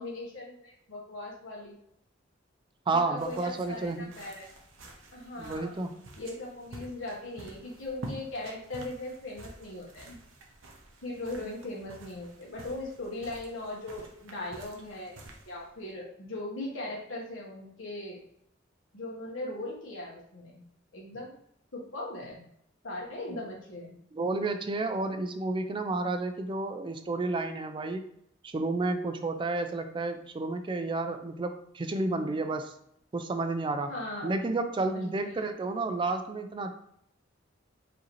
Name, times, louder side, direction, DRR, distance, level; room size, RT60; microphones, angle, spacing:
voice 1, 0.0-1.8 2.9-4.5 5.1-5.8 6.2-10.2 11.0-18.2 18.9-20.6 20.9-21.3 21.7-22.4 22.8-24.0 33.9-34.4 34.8-35.5, left 2 dB, 85° left, -3 dB, 1.1 m, -39 dB
voice 2, 2.9-4.1 5.4-5.9 24.1-28.0 28.4-32.7 33.1-33.9 34.2-36.7, right 3 dB, 25° right, 7 dB, 0.3 m, -31 dB
sound 1, 3.2-15.9, right 1 dB, 80° right, 0.8 m, -49 dB
4.8 x 2.7 x 3.0 m, 0.70 s
head